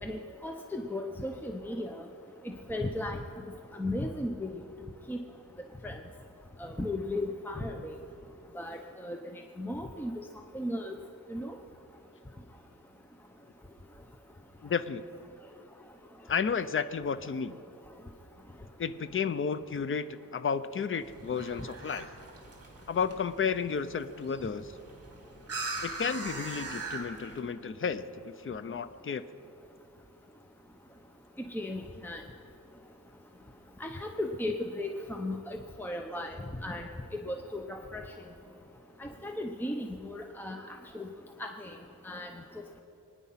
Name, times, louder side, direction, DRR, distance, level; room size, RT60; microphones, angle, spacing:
voice 1, 0.0-2.0 2.7-3.2 3.7-4.5 5.1-5.2 5.8-6.0 6.6-8.0 8.6-9.2 9.6-10.2 10.5-11.0 11.3-11.6 31.5-32.2 33.8-36.9 37.3-38.0 39.0-40.6 40.9-41.1 41.4-41.7 42.0-42.3, left 1 dB, 5° left, 3 dB, 0.8 m, -36 dB
voice 2, 14.6-15.0 16.3-17.6 18.8-22.1 22.9-24.7 25.8-29.2, left 6 dB, 35° left, 12 dB, 0.6 m, -32 dB
sound 1, 21.0-27.4, right 3 dB, 45° right, 2.7 m, -41 dB
25.0 x 9.7 x 5.7 m, 2.7 s
wide cardioid pair, 120°, 34 cm